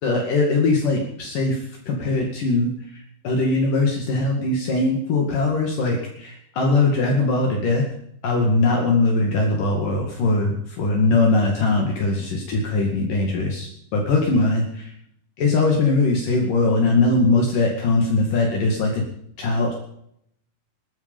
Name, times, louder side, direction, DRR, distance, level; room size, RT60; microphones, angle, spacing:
voice 1, 0.0-1.6 1.9-7.8 8.2-14.9 15.4-19.0 19.4-19.7, left 3 dB, 60° left, 0 dB, 3.7 m, -21 dB
20.5 x 13.0 x 5.4 m, 0.73 s
omnidirectional pair, 4.4 m